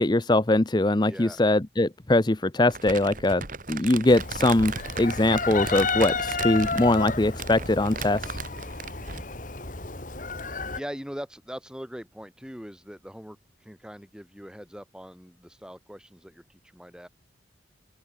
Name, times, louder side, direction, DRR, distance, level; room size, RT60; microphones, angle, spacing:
voice 1, 0.0-8.4, left 2 dB, 25° left, 0.7 m, -22 dB
voice 2, 1.0-1.4 10.8-17.1, equal, 5° right, 5.4 m, -41 dB
Crumpling crinkling, 2.7-9.3, right 4 dB, 45° right, 2.5 m, -37 dB
Chicken rooster, 4.1-10.8, left 4 dB, 45° left, 3.1 m, -32 dB
open air
head